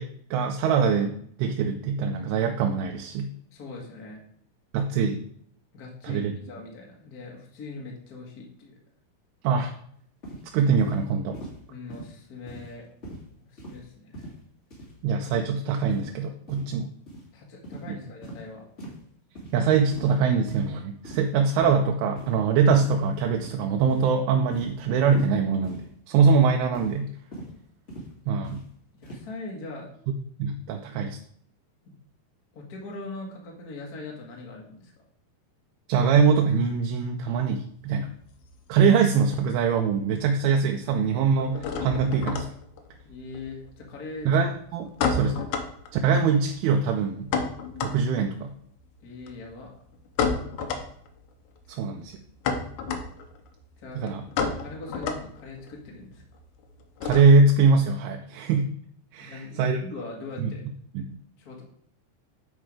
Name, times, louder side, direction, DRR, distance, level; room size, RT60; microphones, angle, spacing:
voice 1, 0.0-3.3 4.7-5.2 6.0-6.3 9.4-9.7 10.5-11.4 15.0-16.9 17.9-18.0 19.5-27.1 28.3-28.6 30.4-31.2 35.9-38.1 38.7-42.5 44.3-45.5 46.0-47.3 47.8-48.5 51.7-52.2 54.0-54.2 57.0-58.7 59.1-59.8 60.4-60.5 60.9-61.2, right 5 dB, 80° right, 3 dB, 2.5 m, -23 dB
voice 2, 3.5-4.2 5.7-8.7 11.7-12.9 13.5-14.3 17.3-18.7 28.9-29.9 31.8-31.9 32.5-34.9 43.0-44.3 49.0-49.7 51.7-52.1 53.8-56.2 59.2-60.6 61.4-61.6, left 3 dB, 55° left, -1 dB, 1.0 m, -41 dB
sound 1, 10.2-10.4 10.8-11.0 11.3-11.6 11.9-12.1 12.5-12.7 13.0-13.2 13.6-13.8 14.1-14.4 14.7-14.9 15.3-15.5 15.8-16.1 16.5-16.7 17.1-17.2 17.6-17.8 18.2-18.4 18.8-19.0 19.3-19.5 19.9-20.2 20.5-20.7 21.0-21.3 21.6-21.8 22.2-22.3 22.7-23.0 23.4-23.6 23.9-24.1 24.5-24.7 25.1-25.3 25.6-25.8 26.2-26.4 26.7-27.0 27.3-27.5 27.9-28.1 28.4-28.6 29.0-29.2, right 1 dB, 25° left, 1.8 m, -40 dB
sound 2, 37.7-39.4 39.6-40.3 40.6-57.6, left 5 dB, 85° left, 1.6 m, -32 dB
9.4 x 4.6 x 4.8 m, 0.64 s
omnidirectional pair, 4.6 m